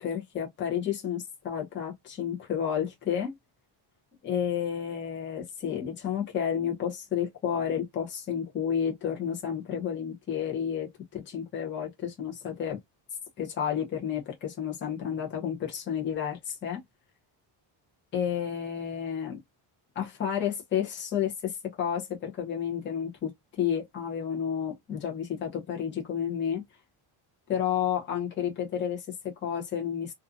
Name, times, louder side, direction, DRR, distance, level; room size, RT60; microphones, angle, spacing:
voice 1, 0.0-3.3 4.2-12.8 13.4-16.8 18.1-19.4 20.0-26.6 27.5-30.1, left 8 dB, 25° left, 0.7 m, -31 dB
2.5 x 2.4 x 2.4 m
cardioid pair, 175°, 48 cm